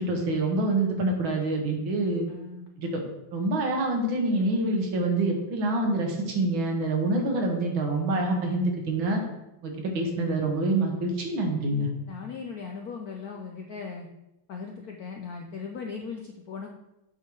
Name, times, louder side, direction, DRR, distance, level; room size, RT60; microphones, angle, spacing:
voice 1, 0.0-2.3 2.8-3.0 3.3-9.2 9.6-11.9, right 2 dB, 65° right, 2 dB, 2.0 m, -26 dB
voice 2, 2.3-2.7 12.1-14.1 14.5-16.7, left 5 dB, 75° left, 2 dB, 0.9 m, -38 dB
8.3 x 4.4 x 4.7 m, 0.91 s
omnidirectional pair, 2.4 m